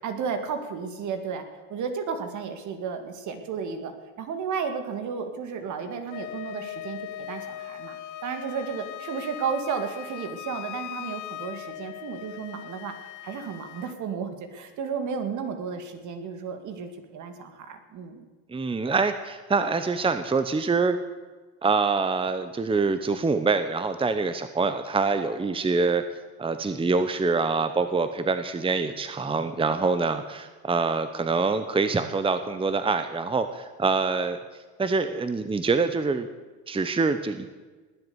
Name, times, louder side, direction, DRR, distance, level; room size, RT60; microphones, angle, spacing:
voice 1, 0.0-1.4 1.7-12.9 13.2-18.2, right 6 dB, 55° right, 7 dB, 2.2 m, -33 dB
Wind instrument woodwind instrument, 6.1-14.0, left 13 dB, 55° left, 0.9 m, -39 dB
voice 2, 18.5-21.0 21.6-26.0 26.4-34.4 34.8-36.3 36.7-37.5, right 4 dB, 15° right, 11 dB, 0.9 m, -25 dB
20.0 x 7.9 x 7.1 m, 1.3 s
hypercardioid pair, 70°, 35 cm